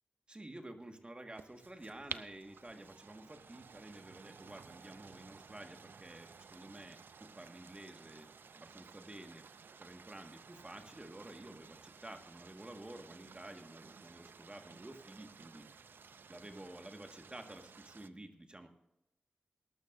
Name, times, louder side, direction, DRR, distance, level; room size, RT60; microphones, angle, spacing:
voice 1, 0.3-9.5 9.8-15.7 16.3-18.7, right 1 dB, 30° right, 5 dB, 1.7 m, -51 dB
sound 1, 1.3-18.1, right 5 dB, 75° right, 0.5 m, -54 dB
19.5 x 12.0 x 2.6 m, 0.90 s
cardioid pair, 45°, 4 cm